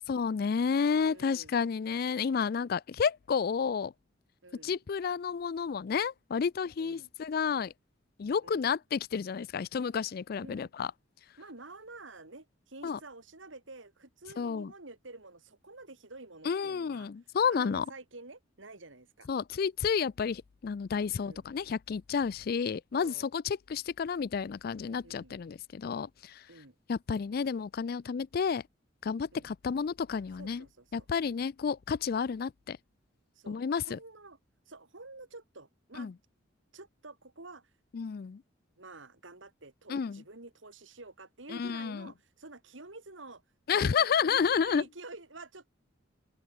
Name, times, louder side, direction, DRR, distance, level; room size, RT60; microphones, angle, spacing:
voice 1, 0.1-3.9 4.6-7.7 8.2-10.9 12.8-13.0 14.4-14.7 16.5-17.8 19.3-26.4 26.9-28.6 29.0-30.6 30.9-32.8 33.5-34.0 36.0-36.1 37.9-38.4 39.9-40.2 41.6-42.1 43.7-44.8, left 6 dB, 50° left, 0.4 m, -31 dB
voice 2, 1.0-1.6 4.4-4.8 6.8-7.1 8.4-8.7 10.4-10.7 11.4-17.1 17.5-19.3 21.1-21.4 22.9-23.3 25.0-25.3 26.5-26.8 29.3-29.5 30.4-31.1 33.3-34.4 34.6-36.1 36.7-37.7 38.8-43.4 43.7-45.7, right 2 dB, 75° right, 3.4 m, -49 dB
open air
head